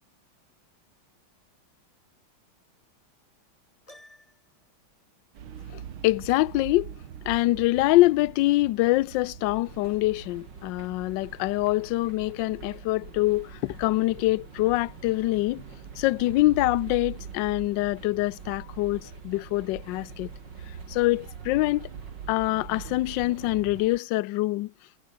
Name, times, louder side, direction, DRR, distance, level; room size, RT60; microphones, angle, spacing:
Piano, 3.9-4.7, left 1 dB, 15° left, 4.3 m, -53 dB
sound 1, 5.3-23.8, right 8 dB, 80° right, 2.4 m, -43 dB
voice 1, 5.7-6.9 7.3-15.6 16.0-20.3 20.9-21.9 22.3-24.7, left 18 dB, 75° left, 1.2 m, -25 dB
sound 2, 9.6-24.0, right 2 dB, 60° right, 8.1 m, -49 dB
omnidirectional pair, 2.2 m